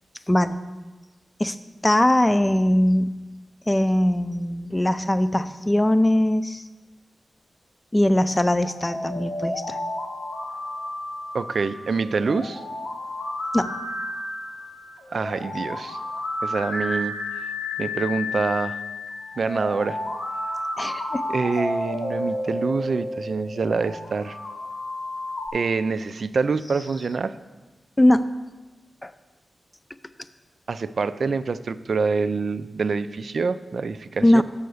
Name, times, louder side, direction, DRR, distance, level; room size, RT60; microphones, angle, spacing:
voice 1, 0.3-0.6 1.4-1.6 1.8-3.2 3.7-6.6 7.9-9.8 13.5-13.7 20.8-21.3 28.0-28.3 29.0-29.1 34.2-34.4, left 1 dB, 20° left, 12 dB, 0.5 m, -20 dB
sound 1, 8.3-25.5, left 1 dB, 85° left, 1.5 m, -31 dB
voice 2, 11.3-12.6 15.1-16.0 16.4-17.2 17.8-18.8 19.4-20.0 21.3-24.4 25.5-27.4 30.7-34.4, right 4 dB, 65° right, 13 dB, 0.3 m, -26 dB
6.7 x 5.6 x 6.3 m, 1.2 s
cardioid pair, 45°, 0 cm